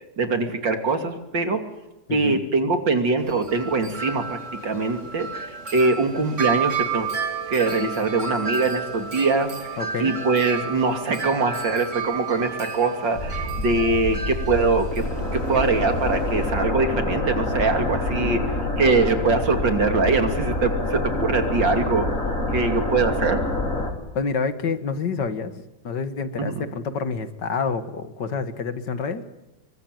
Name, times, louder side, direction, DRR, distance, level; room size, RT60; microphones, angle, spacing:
voice 1, 0.2-1.6 2.1-5.4 5.7-7.1 7.5-9.7 10.0-18.4 18.8-22.1 22.5-23.4 26.4-26.6, right 3 dB, 75° right, 6 dB, 3.5 m, -23 dB
voice 2, 2.1-2.4 9.8-10.2 18.1-18.4 24.2-29.2, left 5 dB, 65° left, 10 dB, 2.2 m, -28 dB
Wind chime, 3.2-16.5, right 5 dB, 40° right, 2.9 m, -32 dB
sound 1, 13.1-23.9, left 2 dB, 40° left, 4.3 m, -26 dB
26.0 x 23.5 x 9.3 m, 0.96 s
omnidirectional pair, 2.0 m